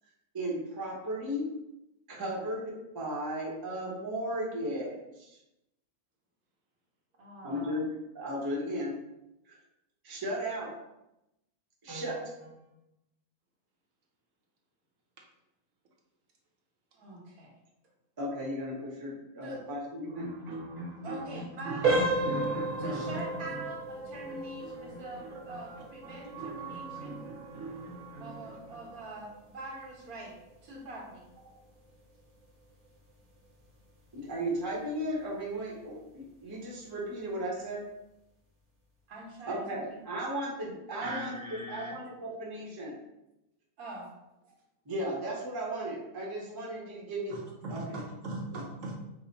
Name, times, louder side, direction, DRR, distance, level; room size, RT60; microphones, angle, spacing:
voice 1, 0.3-1.4 2.1-5.4 7.4-7.9 8.1-8.9 9.5-9.6 10.0-10.7 11.8-12.7 18.2-20.3 31.4-31.5 34.1-37.8 39.4-43.0 44.9-47.4 47.7-48.0 48.5-48.6, right 1 dB, 20° right, -3 dB, 0.7 m, -35 dB
voice 2, 7.2-7.8 16.9-17.5 19.4-19.6 21.0-22.1 22.8-27.2 28.2-30.3 30.6-31.3 39.1-39.9 43.8-44.1, right 1 dB, 80° right, -3 dB, 1.6 m, -44 dB
voice 3, 20.1-23.7 24.1-29.0 41.0-41.9 47.3-49.1, right 2 dB, 65° right, 0 dB, 1.1 m, -40 dB
sound 1, 21.8-32.5 32.9-33.1 33.7-33.8 34.3-34.4, right 2 dB, 40° right, 1.0 m, -35 dB
4.8 x 2.1 x 4.0 m, 0.89 s
omnidirectional pair, 1.5 m